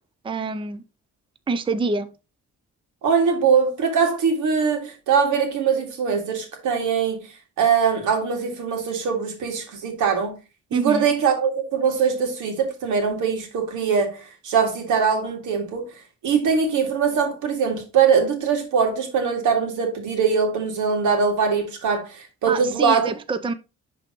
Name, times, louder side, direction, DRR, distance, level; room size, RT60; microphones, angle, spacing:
voice 1, 0.2-0.8 1.5-2.1 10.7-11.1 22.5-23.5, right 4 dB, 15° right, 0.5 m, -26 dB
voice 2, 3.0-7.3 7.6-10.3 10.7-15.9 16.2-23.1, right 6 dB, 80° right, 2.2 m, -22 dB
10.5 x 3.8 x 3.0 m
cardioid pair, 90°, 30 cm